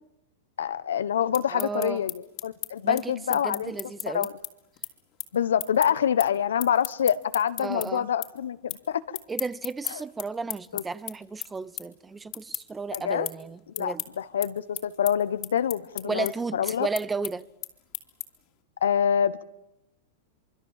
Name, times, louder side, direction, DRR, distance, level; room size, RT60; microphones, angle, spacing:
voice 1, 0.6-3.7 4.1-4.3 5.3-9.0 10.7-10.8 12.9-13.3 13.8-16.9 18.8-19.4, left 8 dB, 90° left, 1.2 m, -26 dB
sound 1, 1.1-7.9 8.2-8.8 9.1-18.5, left 19 dB, 45° left, 2.7 m, -36 dB
voice 2, 1.5-2.0 2.8-4.3 7.6-8.1 9.3-14.0 16.0-17.5, right 4 dB, 15° right, 0.8 m, -33 dB
25.0 x 24.0 x 7.5 m
hypercardioid pair, 130°, 0 cm